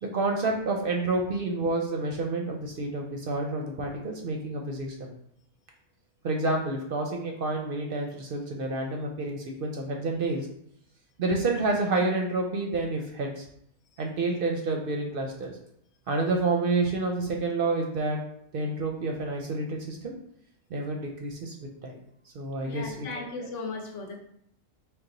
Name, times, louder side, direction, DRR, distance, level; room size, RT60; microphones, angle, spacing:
voice 1, 0.0-5.1 6.2-10.5 11.2-13.5 14.0-15.6 16.1-18.2 18.5-20.1 20.7-21.5 21.8-22.0 22.3-23.5, right 2 dB, 60° right, 1 dB, 0.6 m, -29 dB
voice 2, 22.6-24.2, left 3 dB, 85° left, 2 dB, 1.1 m, -37 dB
3.9 x 2.3 x 3.8 m, 0.70 s
omnidirectional pair, 1.2 m